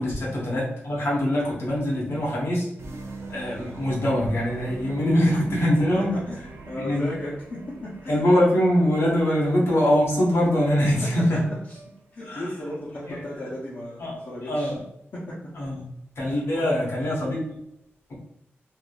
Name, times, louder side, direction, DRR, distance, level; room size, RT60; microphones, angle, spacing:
voice 1, 0.0-2.7 3.3-6.1 6.8-7.1 8.1-11.4 12.3-12.4 13.1-13.2 14.0-14.1 14.5-14.8 15.6-15.8 16.2-17.6, equal, 70° left, -4 dB, 1.3 m, -23 dB
sound 1, 2.8-14.5, right 3 dB, 80° right, 0.5 m, -42 dB
voice 2, 6.7-8.3 11.7-11.8 12.1-14.7 15.1-15.4 16.5-16.9, left 1 dB, 55° left, -8 dB, 0.8 m, -35 dB
3.6 x 2.6 x 2.4 m, 0.82 s
wide cardioid pair, 115°, 4 cm